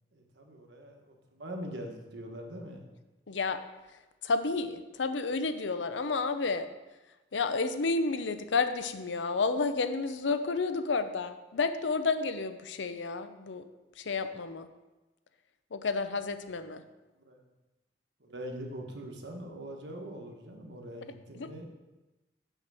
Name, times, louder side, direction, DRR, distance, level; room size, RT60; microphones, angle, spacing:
voice 1, 0.1-2.8 17.2-17.4 18.2-21.7, equal, 75° right, 2 dB, 1.3 m, -43 dB
voice 2, 3.3-3.6 4.2-6.7 7.3-13.6 14.0-14.7 15.7-16.8 21.3-21.5, left 4 dB, 85° left, 10 dB, 0.6 m, -31 dB
5.9 x 5.7 x 7.0 m, 1.1 s
head